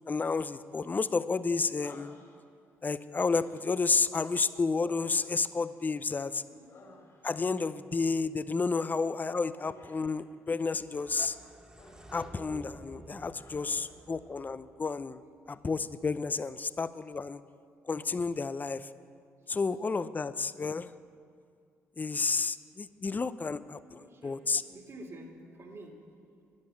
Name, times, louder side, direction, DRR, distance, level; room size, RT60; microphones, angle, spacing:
voice 1, 0.0-2.2 2.8-6.4 7.2-11.4 12.1-15.2 15.5-17.4 17.9-18.9 19.5-20.9 22.0-24.6, left 4 dB, 30° left, 15 dB, 0.5 m, -31 dB
Human voice, 1.8-2.7 3.2-3.9 4.7-6.1 6.5-7.5 9.5-10.2 11.2-12.3 12.6-12.8 13.3-14.1, left 2 dB, 50° left, 2.9 m, -56 dB
voice 2, 6.5-6.8 13.6-13.7 23.8-26.0, right 1 dB, 50° right, 1 dB, 2.5 m, -49 dB
sound 1, 10.8-15.7, right 1 dB, 15° right, 1.8 m, -51 dB
11.5 x 10.5 x 7.0 m, 2.2 s
hypercardioid pair, 55°, 6 cm